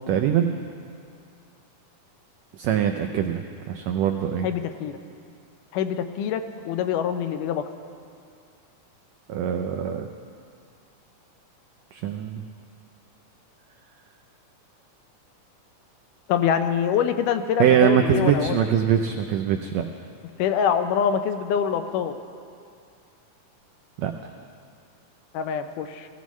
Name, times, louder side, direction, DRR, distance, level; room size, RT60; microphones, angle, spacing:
voice 1, 0.1-0.6 2.5-4.5 9.3-10.1 11.9-12.4 17.6-19.8 24.0-24.1, right 9 dB, 90° right, 5 dB, 1.5 m, -23 dB
voice 2, 4.4-5.0 5.7-7.6 16.3-18.6 20.4-22.1 25.3-26.1, left 8 dB, 80° left, 8 dB, 2.2 m, -25 dB
20.5 x 14.5 x 3.1 m, 2.4 s
omnidirectional pair, 3.7 m